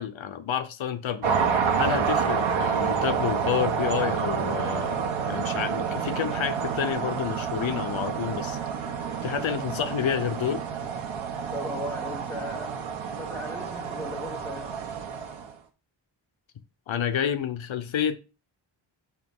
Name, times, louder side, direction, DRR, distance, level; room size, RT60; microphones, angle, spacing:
voice 1, 0.0-1.4 1.8-8.6 9.2-10.6 16.9-18.2, left 9 dB, 80° left, 0.8 m, -29 dB
sound 1, 1.2-15.5, right 6 dB, 85° right, 1.1 m, -29 dB
voice 2, 11.5-12.8 13.2-14.9, left 1 dB, 5° left, 1.2 m, -37 dB
7.4 x 3.0 x 5.3 m
wide cardioid pair, 175°, 46 cm